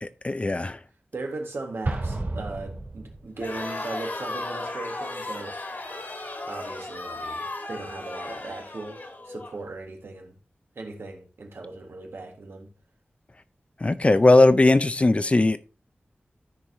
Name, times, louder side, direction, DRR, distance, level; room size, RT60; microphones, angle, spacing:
voice 1, 0.0-0.8 13.8-15.6, left 2 dB, 30° left, 0.5 m, -19 dB
voice 2, 1.1-5.6 6.5-9.0 9.2-10.3 10.7-12.7, right 3 dB, 80° right, 1.8 m, -38 dB
Explosion, 1.8-3.5, right 2 dB, 55° right, 3.3 m, -31 dB
Crowd, 3.4-9.5, left 2 dB, 55° left, 1.9 m, -35 dB
14.0 x 4.7 x 2.8 m
wide cardioid pair, 90°, 4 cm